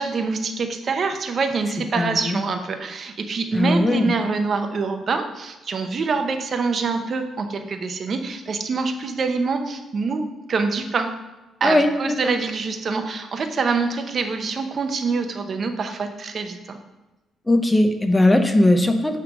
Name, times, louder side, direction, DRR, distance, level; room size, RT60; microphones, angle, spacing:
voice 1, 0.0-11.1 11.6-16.8, right 4 dB, 50° right, 6 dB, 0.8 m, -25 dB
voice 2, 1.9-2.4 3.5-4.1 11.6-12.3 17.5-19.2, left 1 dB, 15° left, 6 dB, 0.7 m, -19 dB
9.0 x 3.4 x 5.1 m, 1.1 s
cardioid pair, 90°, 0 cm